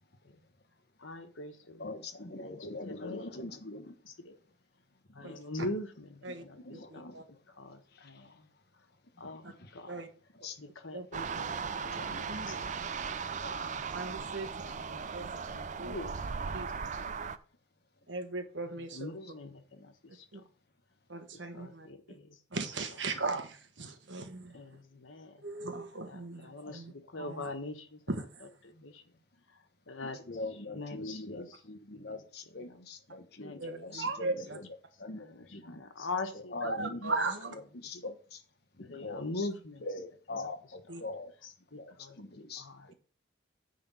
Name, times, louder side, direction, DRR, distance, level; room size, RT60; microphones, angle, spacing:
voice 1, 1.0-2.0 2.4-2.6 2.9-3.4 3.7-4.4 5.1-7.1 7.5-8.5 9.2-9.4 9.7-10.1 10.6-12.6 13.6-15.2 15.5-16.1 16.4-16.6 17.0-17.2 18.8-20.5 21.5-22.4 24.5-25.4 26.1-28.0 28.6-29.2 29.5-30.2 30.7-31.6 31.9-32.2 32.6-32.9 33.4-34.0 35.1-37.0 37.9-38.1 38.8-39.8 40.3-40.5 40.9-41.0 41.4-42.9, left 2 dB, 85° left, 1.4 m, -43 dB
voice 2, 1.8-4.0 5.2-5.4 6.6-7.2 7.9-8.3 9.6-9.7 10.4-10.6 11.9-12.2 12.6-13.0 13.4-13.6 26.6-26.8 30.0-34.4 35.0-35.8 36.5-37.1 37.7-38.4 38.8-39.3 39.8-41.3 41.8-42.9, left 2 dB, 55° left, 1.2 m, -43 dB
voice 3, 6.7-7.2 9.4-9.5 9.9-10.1 10.9-11.1 12.3-12.6 13.9-14.5 15.1-16.0 16.5-16.7 17.2-17.3 18.1-19.1 20.3-20.4 21.1-22.2 22.5-24.8 25.4-27.5 28.1-28.5 33.6-34.6 36.6-37.6 40.9-41.0, right 3 dB, 70° right, 1.3 m, -38 dB
sound 1, 11.1-17.4, right 5 dB, 40° right, 0.4 m, -37 dB
9.5 x 3.8 x 6.9 m
head